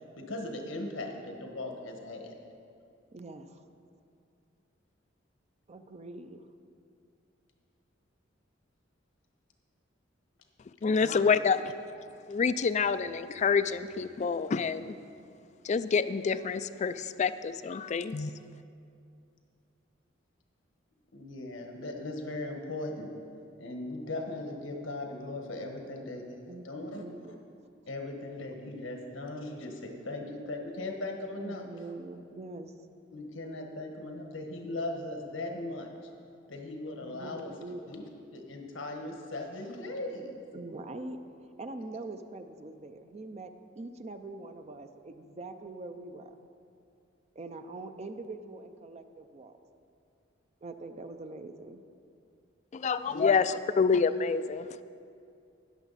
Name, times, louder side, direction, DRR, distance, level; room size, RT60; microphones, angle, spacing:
voice 1, 0.2-2.3 11.0-11.3 21.1-23.1 23.6-27.1 27.9-31.6 33.1-35.9 36.5-37.5 37.9-38.0 38.3-40.4 52.9-53.3, left 2 dB, 85° left, 2 dB, 1.4 m, -38 dB
voice 2, 3.1-3.6 5.7-6.5 26.5-27.4 31.4-32.7 37.0-37.9 40.5-46.5 47.3-49.6 50.6-51.8, right 2 dB, 35° right, 8 dB, 0.5 m, -43 dB
voice 3, 10.8-11.7 12.3-15.0 15.6-18.3 52.7-54.7, left 5 dB, 35° left, 13 dB, 0.3 m, -27 dB
19.5 x 7.0 x 4.1 m, 2.5 s
head